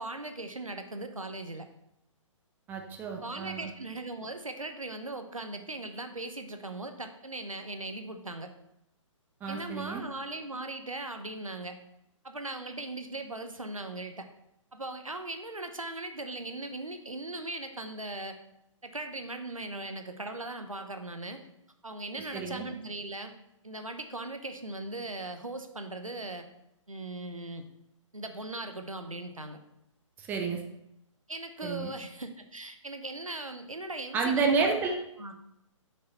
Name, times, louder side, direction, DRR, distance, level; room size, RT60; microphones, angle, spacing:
voice 1, 0.0-1.7 3.2-8.5 9.5-11.8 12.2-14.3 14.7-18.4 18.8-21.4 21.8-23.3 23.6-26.5 26.9-27.6 28.1-29.6 31.3-34.8 35.2-35.3, right 2 dB, 90° right, 7 dB, 0.9 m, -39 dB
voice 2, 2.7-3.7 9.4-10.0 22.3-22.7 30.2-30.6 31.6-31.9 34.1-35.0, right 4 dB, 10° right, 2 dB, 0.7 m, -30 dB
6.5 x 5.6 x 4.1 m, 0.83 s
figure-of-eight pair, 135°, 17 cm